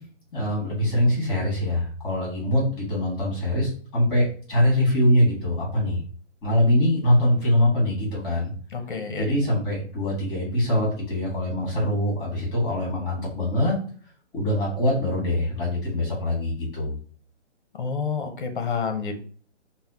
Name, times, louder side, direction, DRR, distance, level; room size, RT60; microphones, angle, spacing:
voice 1, 0.3-6.0 6.4-8.5 9.2-13.8 14.3-16.9, left 1 dB, 20° left, -4 dB, 1.7 m, -23 dB
voice 2, 8.7-9.3 17.8-19.2, left 5 dB, 45° left, 6 dB, 0.7 m, -28 dB
5.5 x 2.1 x 2.8 m, 0.43 s
hypercardioid pair, 175°, 35 cm